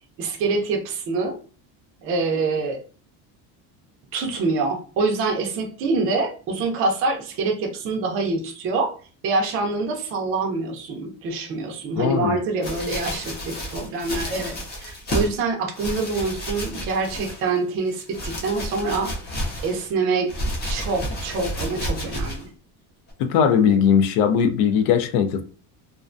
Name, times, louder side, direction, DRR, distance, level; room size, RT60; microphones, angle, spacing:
voice 1, 0.2-1.4 2.0-2.8 4.1-8.9 9.2-19.1 19.6-20.3 20.7-22.5, right 3 dB, 35° right, 0.4 m, -25 dB
voice 2, 12.0-12.3 23.3-25.4, left 7 dB, 80° left, 0.6 m, -19 dB
sound 1, 12.6-15.4 15.7-17.6 17.9-19.9 20.3-22.5 23.1-23.2, equal, 25° left, 0.5 m, -31 dB
2.4 x 2.2 x 2.4 m
cardioid pair, 165°, 43 cm